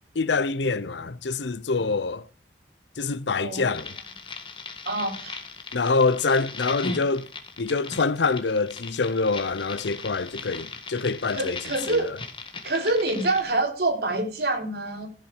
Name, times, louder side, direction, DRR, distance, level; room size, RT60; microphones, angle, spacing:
voice 1, 0.1-2.2 3.0-3.9 5.7-7.3 7.6-11.6 11.9-12.2, left 4 dB, 75° left, 0.7 m, -25 dB
voice 2, 3.4-3.8 4.9-5.4 11.3-12.1 12.6-15.1, right 2 dB, 60° right, 3.8 m, -26 dB
sound 1, 3.7-13.4, left 4 dB, 30° left, 1.8 m, -38 dB
14.5 x 7.4 x 6.5 m
head